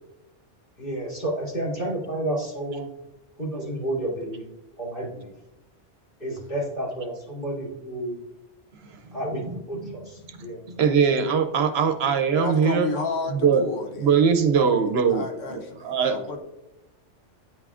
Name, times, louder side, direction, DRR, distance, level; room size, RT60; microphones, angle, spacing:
voice 1, 0.8-2.9 3.4-4.4 4.8-5.3 6.2-8.2 9.1-10.7 11.6-11.8, right 1 dB, 45° left, -5 dB, 2.6 m, -31 dB
voice 2, 9.8-12.9 13.3-13.6 14.0-16.2, right 6 dB, 65° right, 6 dB, 0.8 m, -22 dB
voice 3, 12.3-14.1 14.5-16.4, left 2 dB, 85° left, 4 dB, 1.2 m, -32 dB
9.0 x 5.8 x 2.4 m, 0.94 s
omnidirectional pair, 1.2 m